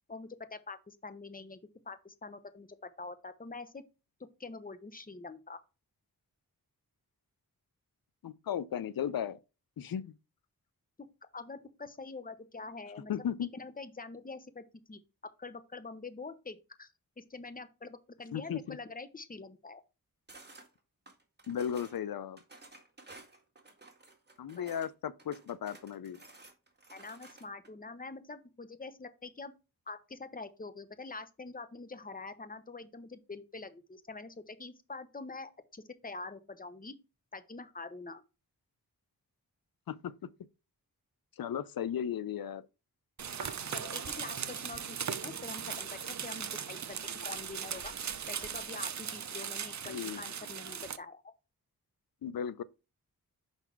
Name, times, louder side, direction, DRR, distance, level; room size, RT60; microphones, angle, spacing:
voice 1, 0.1-1.6 1.8-3.8 4.4-5.6 11.3-13.2 13.5-15.0 15.4-16.9 17.2-19.8 24.6-24.7 26.9-29.5 29.9-36.9 37.3-38.2 43.4-47.0 47.2-47.9 48.3-51.2, left 3 dB, 25° left, 0.9 m, -45 dB
voice 2, 8.2-9.4 9.8-10.1 13.1-13.5 18.3-18.8 21.5-22.4 24.4-26.2 39.9-40.3 41.4-42.6 49.9-50.2 52.2-52.6, left 9 dB, 70° left, 0.6 m, -36 dB
sound 1, 20.3-20.7 21.1-22.0 22.4-24.9 25.2-27.7, right 2 dB, 25° right, 1.9 m, -54 dB
sound 2, 43.2-51.0, right 7 dB, 50° right, 0.6 m, -38 dB
5.6 x 4.1 x 4.5 m
cardioid pair, 60°, 37 cm